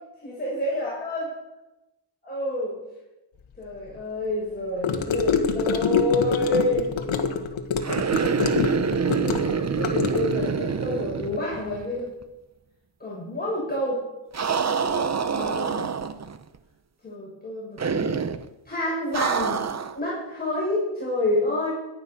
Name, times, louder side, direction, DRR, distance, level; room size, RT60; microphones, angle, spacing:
voice 1, 0.2-1.3 2.2-2.8 3.6-6.9 9.0-12.1 13.0-14.0 15.3-15.9 17.0-18.2 18.6-19.6 19.9-21.7, left 1 dB, 20° left, -7 dB, 6.3 m, -28 dB
Gurgling / Car passing by / Sink (filling or washing), 4.8-10.5, left 6 dB, 65° left, 1.7 m, -25 dB
sound 1, 7.8-12.0 12.2-12.3 14.3-16.4 17.8-18.4 19.1-20.0, right 6 dB, 35° right, 0.8 m, -26 dB
17.0 x 11.5 x 5.8 m, 1.0 s
wide cardioid pair, 120°, 49 cm